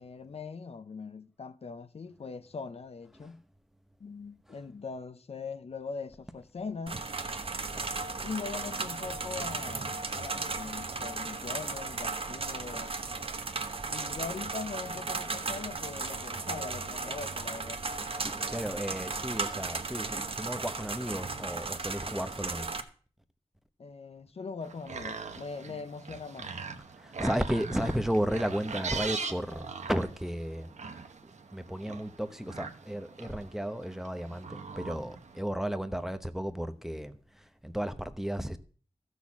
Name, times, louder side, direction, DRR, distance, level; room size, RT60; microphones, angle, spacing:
voice 1, 0.0-3.4 4.0-7.1 8.2-13.0 13.9-17.8 23.8-26.5, left 4 dB, 60° left, 0.7 m, -41 dB
sound 1, 6.9-22.8, right 3 dB, 50° right, 1.1 m, -36 dB
voice 2, 18.2-22.7 26.9-30.7 31.5-38.6, equal, 5° right, 0.9 m, -34 dB
sound 2, 24.6-35.4, right 5 dB, 85° right, 1.2 m, -41 dB
14.0 x 6.4 x 7.2 m
wide cardioid pair, 95°, 12 cm